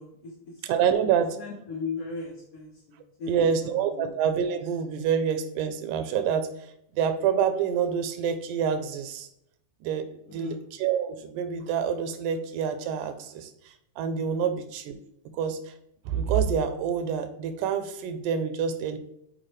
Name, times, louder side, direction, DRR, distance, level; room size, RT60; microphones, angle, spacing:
voice 1, 0.0-0.7 1.4-4.1 10.3-10.6, left 4 dB, 65° left, -3 dB, 1.5 m, -37 dB
voice 2, 0.6-1.4 3.3-6.5 6.9-9.3 9.8-15.0 15.3-15.7 16.1-19.0, right 7 dB, 90° right, 10 dB, 2.2 m, -27 dB
7.6 x 4.3 x 3.2 m, 0.77 s
omnidirectional pair, 3.7 m